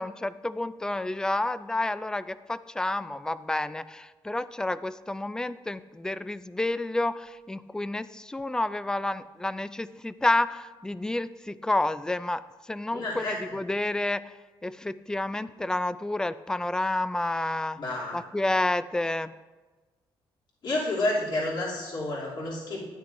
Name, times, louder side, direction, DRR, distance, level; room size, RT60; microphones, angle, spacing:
voice 1, 0.0-12.4 12.7-13.2 13.5-14.2 14.6-17.8 18.1-19.3, left 2 dB, 10° left, 15 dB, 0.3 m, -29 dB
voice 2, 12.9-13.4 17.8-18.2 20.6-22.9, left 2 dB, 55° left, -6 dB, 2.8 m, -30 dB
12.5 x 10.0 x 2.6 m, 1.3 s
cardioid pair, 95°, 9 cm